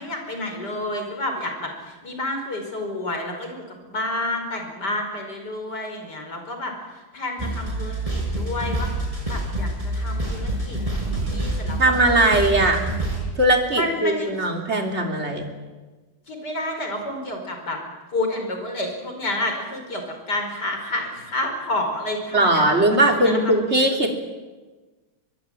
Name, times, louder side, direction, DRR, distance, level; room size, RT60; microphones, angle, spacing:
voice 1, 0.0-3.6 3.9-6.7 7.1-8.9 9.3-10.8 11.1-12.2 13.7-14.3 16.3-17.8 18.1-22.7 23.2-23.5, left 1 dB, 50° left, 4 dB, 5.5 m, -29 dB
sound 1, 7.4-13.2, right 1 dB, 15° right, 5.9 m, -27 dB
voice 2, 11.8-12.8 13.4-15.5 22.3-24.1, right 1 dB, 30° right, 3 dB, 3.6 m, -19 dB
23.0 x 22.5 x 9.1 m, 1.3 s
omnidirectional pair, 2.3 m